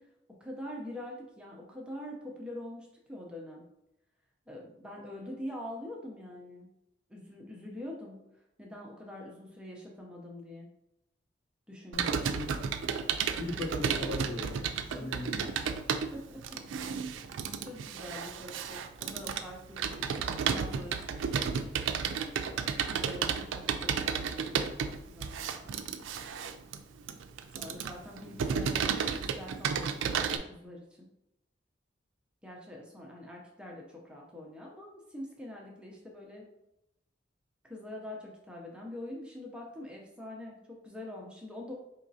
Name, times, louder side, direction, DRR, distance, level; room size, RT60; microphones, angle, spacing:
voice 1, 0.0-3.6 4.5-6.7 7.1-8.2 8.6-10.7 11.7-12.2 14.9-15.1 15.4-15.6 16.1-16.4 16.8-17.0 17.6-21.7 22.9-24.5 24.8-25.8 27.5-31.1 32.4-36.5 37.6-41.7, left 1 dB, 5° right, -1 dB, 0.6 m, -45 dB
voice 2, 11.9-12.5 13.3-15.7 28.2-28.6, left 2 dB, 80° left, -4 dB, 1.4 m, -40 dB
Computer keyboard, 11.9-30.4, right 6 dB, 75° right, 0.3 m, -33 dB
4.9 x 3.0 x 2.7 m, 0.86 s
head